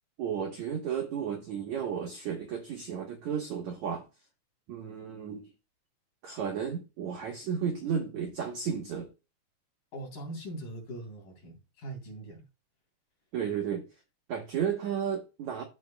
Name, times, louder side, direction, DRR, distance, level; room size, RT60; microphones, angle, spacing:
voice 1, 0.2-4.0 4.7-5.5 6.2-9.1 13.3-13.9 14.3-15.6, right 7 dB, 80° right, 1.6 m, -33 dB
voice 2, 9.9-12.4, right 1 dB, 50° left, 4.6 m, -41 dB
14.0 x 4.8 x 2.2 m
omnidirectional pair, 5.1 m